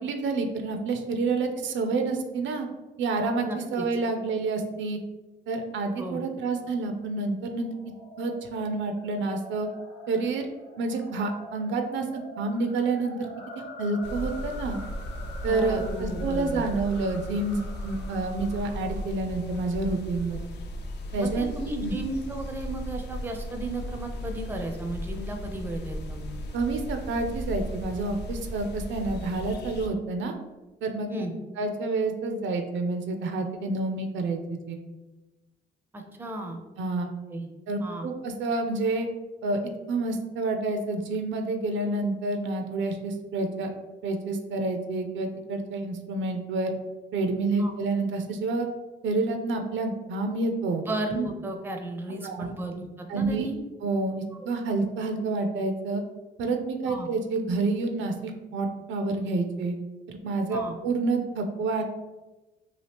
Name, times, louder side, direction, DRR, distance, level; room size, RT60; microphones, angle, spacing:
voice 1, 0.0-2.7 3.0-5.0 5.5-7.7 8.2-9.7 10.1-10.5 10.8-13.3 13.6-14.8 15.4-20.4 21.1-21.5 21.8-22.0 26.5-30.3 30.8-31.1 31.6-34.8 36.8-37.1 37.7-39.1 39.4-39.6 39.9-43.7 44.0-46.7 47.1-48.7 49.0-50.8 52.1-52.5 53.1-53.5 53.8-56.0 56.4-59.7 60.1-61.8, right 3 dB, 70° right, 5 dB, 0.4 m, -28 dB
voice 2, 3.4-3.8 6.0-6.2 15.5-16.6 21.2-26.3 31.1-31.3 35.9-36.6 37.0-37.5 37.8-38.1 47.6-47.7 50.9-53.6 54.4-54.5 56.9-57.1 60.5-60.8, right 2 dB, 10° right, 4 dB, 0.4 m, -34 dB
sound 1, 7.6-20.0, left 1 dB, 80° left, 0.8 m, -46 dB
sound 2, 14.0-29.9, equal, 60° left, 0.4 m, -36 dB
2.8 x 2.4 x 3.3 m, 1.1 s
cardioid pair, 90°, 20 cm